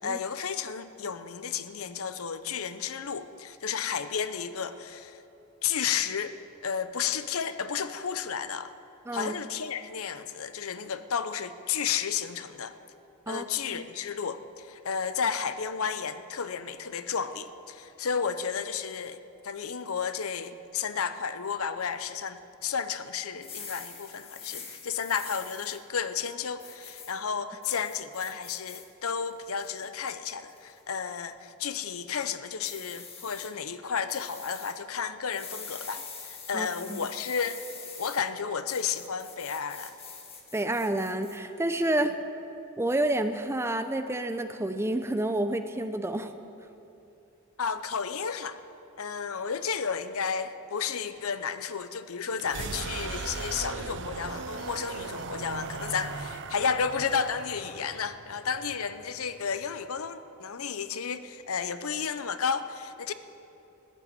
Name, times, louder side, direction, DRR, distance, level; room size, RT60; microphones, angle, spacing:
voice 1, 0.0-5.2 5.6-8.7 9.1-12.7 13.3-19.2 19.4-37.6 38.0-39.9 47.6-48.6 49.0-63.1, left 6 dB, 70° left, 12 dB, 0.7 m, -32 dB
voice 2, 13.3-13.9 36.5-37.0 40.5-42.1 42.8-46.3, right 1 dB, 10° right, 8 dB, 0.6 m, -29 dB
sound 1, 23.3-25.8 26.6-27.1 27.6-28.8 29.3-29.9 30.5-30.8 32.6-33.5 34.1-34.7 35.3-38.2 38.7-41.4, left 6 dB, 25° left, 1.7 m, -44 dB
sound 2, 52.3-60.1, right 4 dB, 55° right, 0.6 m, -39 dB
14.5 x 11.0 x 8.9 m, 2.8 s
head